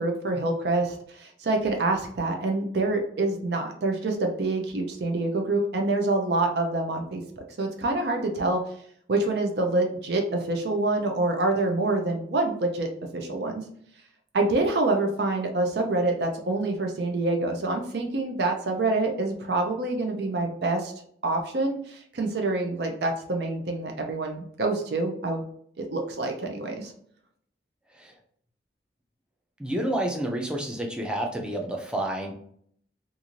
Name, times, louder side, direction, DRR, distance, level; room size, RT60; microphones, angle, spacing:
voice 1, 0.0-8.6 9.1-13.6 14.3-20.9 21.2-25.4 25.8-26.9, right 2 dB, 65° right, 3 dB, 0.5 m, -26 dB
voice 2, 29.6-32.3, right 1 dB, 5° right, 1 dB, 0.4 m, -29 dB
2.5 x 2.4 x 3.0 m, 0.63 s
head